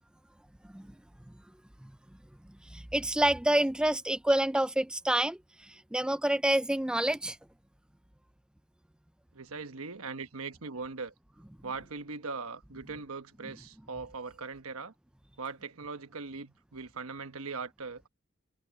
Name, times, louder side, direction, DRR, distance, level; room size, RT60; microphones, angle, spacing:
voice 1, 2.6-7.4 13.4-13.5, right 1 dB, 5° right, 0.3 m, -28 dB
voice 2, 9.3-11.1 11.6-14.9 15.4-18.1, right 4 dB, 70° right, 1.2 m, -40 dB
head